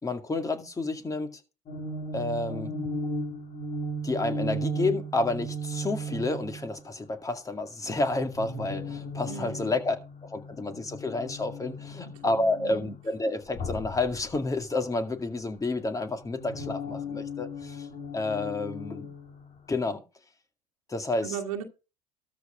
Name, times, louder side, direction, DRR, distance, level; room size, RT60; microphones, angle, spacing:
voice 1, 0.0-1.4 2.1-2.7 4.0-10.0 10.2-17.9 18.1-19.1 19.7-20.0 20.9-21.4, left 2 dB, 20° left, 2.1 m, -30 dB
sound 1, 1.7-6.8 7.9-13.1 13.5-15.5 15.9-19.9, right 1 dB, 45° left, 2.6 m, -37 dB
voice 2, 9.3-9.7 12.1-12.9 21.2-21.6, right 8 dB, 90° right, 1.7 m, -37 dB
13.0 x 5.6 x 5.0 m
hypercardioid pair, 80°, 17 cm